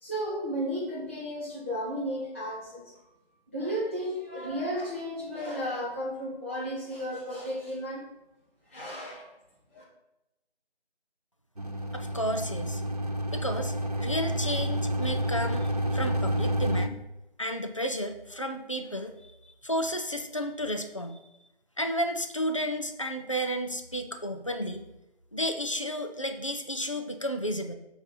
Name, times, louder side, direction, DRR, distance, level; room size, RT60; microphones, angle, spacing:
voice 1, 0.0-2.9 3.5-8.0 8.7-9.3 9.7-9.8, equal, 10° left, -7 dB, 1.4 m, -33 dB
sound 1, 11.6-16.9, equal, 40° right, 0.5 m, -29 dB
voice 2, 11.9-12.8 13.3-17.0 17.4-19.3 19.6-21.2 21.8-24.8 25.3-27.7, equal, 30° left, 5 dB, 0.5 m, -32 dB
8.3 x 5.2 x 5.6 m, 0.93 s
figure-of-eight pair, 160°, 31 cm